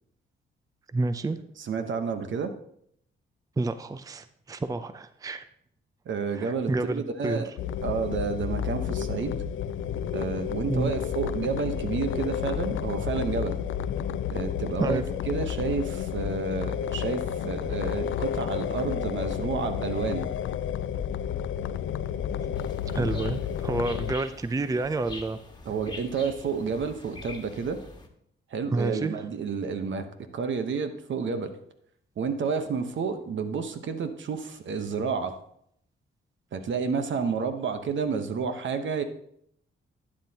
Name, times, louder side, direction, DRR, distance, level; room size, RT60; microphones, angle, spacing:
voice 1, 0.9-1.4 3.6-5.5 6.3-7.4 10.7-10.9 14.8-15.0 22.9-25.4 28.7-29.2, right 2 dB, 15° right, 12 dB, 0.5 m, -29 dB
voice 2, 1.6-2.5 6.1-7.5 7.8-9.3 10.1-13.6 14.3-20.3 22.9-23.2 25.7-27.8 28.5-30.1 30.3-31.5 32.2-35.3 36.5-39.0, right 5 dB, 65° right, 8 dB, 1.0 m, -30 dB
sound 1, 7.6-24.1, left 9 dB, 70° left, 0.5 m, -31 dB
sound 2, 22.5-28.1, left 3 dB, 20° left, 1.5 m, -45 dB
11.5 x 8.7 x 2.9 m, 0.70 s
cardioid pair, 70°, 21 cm